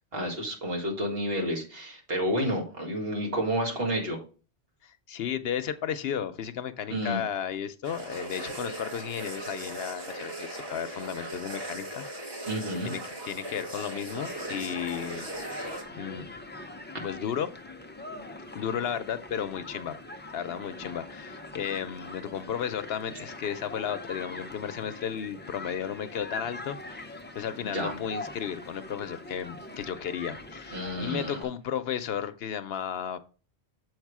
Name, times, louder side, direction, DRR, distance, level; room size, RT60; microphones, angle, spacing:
voice 1, 0.1-4.2 6.9-7.2 12.5-12.9 27.6-27.9 30.7-31.4, equal, 60° right, 0 dB, 2.1 m, -30 dB
voice 2, 4.8-12.3 12.8-15.3 15.9-16.3 17.0-17.5 18.5-20.0 20.3-33.2, left 8 dB, 70° left, 12 dB, 0.8 m, -34 dB
sound 1, 7.8-15.8, right 1 dB, 25° right, 1.3 m, -38 dB
Human group actions, 14.1-31.4, left 2 dB, 15° left, 0.4 m, -42 dB
7.3 x 4.7 x 4.7 m, 0.37 s
omnidirectional pair, 1.1 m